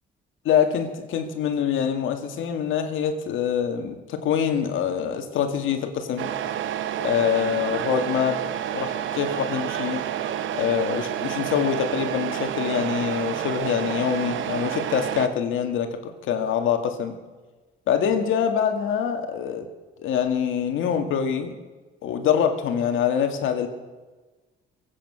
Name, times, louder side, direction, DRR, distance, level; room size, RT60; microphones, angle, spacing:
voice 1, 0.4-6.3 7.0-8.4 8.7-10.0 10.5-17.1 17.9-19.7 20.0-21.5 22.0-23.7, left 8 dB, 85° left, 6 dB, 2.0 m, -25 dB
Truck, 6.2-15.3, right 10 dB, 75° right, 1.0 m, -29 dB
23.0 x 8.8 x 6.3 m, 1.3 s
cardioid pair, 90°, 20 cm